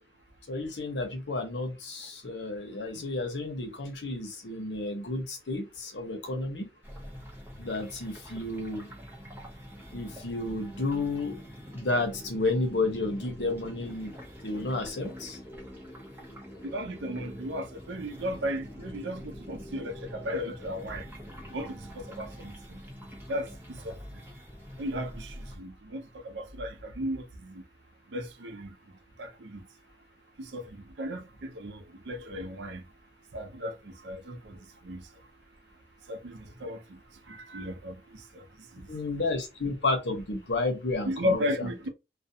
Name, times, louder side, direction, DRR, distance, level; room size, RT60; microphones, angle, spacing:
voice 1, 0.5-6.7 7.6-8.9 9.9-11.4 11.7-14.2 14.4-15.4 38.9-41.7, left 2 dB, 80° left, 0.8 m, -31 dB
sound 1, 6.8-25.6, equal, 15° right, 0.7 m, -45 dB
voice 2, 16.7-21.1 21.5-22.8 23.3-24.3 24.8-27.6 28.1-28.7 29.2-29.6 30.4-32.8 33.3-35.1 36.1-37.0 37.3-38.5 38.7-38.9 39.1-39.3 41.1-41.9, equal, 80° right, 0.6 m, -35 dB
2.4 x 2.2 x 2.7 m
head